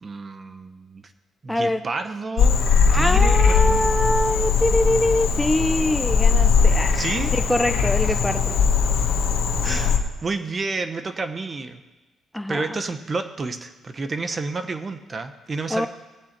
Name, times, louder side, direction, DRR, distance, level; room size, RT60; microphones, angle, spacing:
voice 1, 0.0-1.0 1.4-2.7 2.9-3.8 6.9-7.3 9.6-11.8 12.5-15.9, right 3 dB, 35° right, 9 dB, 1.1 m, -30 dB
voice 2, 1.5-1.8 2.9-7.0 7.3-8.6 12.3-12.8 15.7-15.9, left 1 dB, 5° left, 10 dB, 0.4 m, -23 dB
Frog, 2.4-10.0, left 5 dB, 80° left, 1.3 m, -20 dB
19.5 x 8.2 x 4.5 m, 1.2 s
cardioid pair, 90°, 0 cm